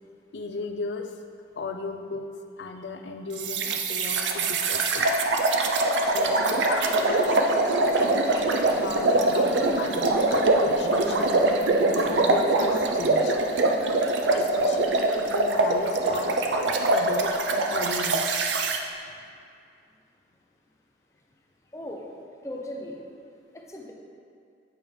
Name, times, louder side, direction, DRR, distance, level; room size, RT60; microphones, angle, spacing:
voice 1, 0.3-1.1 1.6-2.3 2.6-5.0 6.0-7.4 7.9-11.3 11.9-13.4 14.3-16.3 16.6-18.5, left 3 dB, 75° left, 5 dB, 0.5 m, -35 dB
sound 1, 3.4-18.8, right 2 dB, 85° right, 0.5 m, -23 dB
voice 2, 6.2-6.7 19.1-19.2 21.7-22.0 22.4-23.0 23.5-23.9, left 1 dB, 15° left, 0 dB, 0.6 m, -39 dB
8.3 x 5.1 x 3.1 m, 2.4 s
head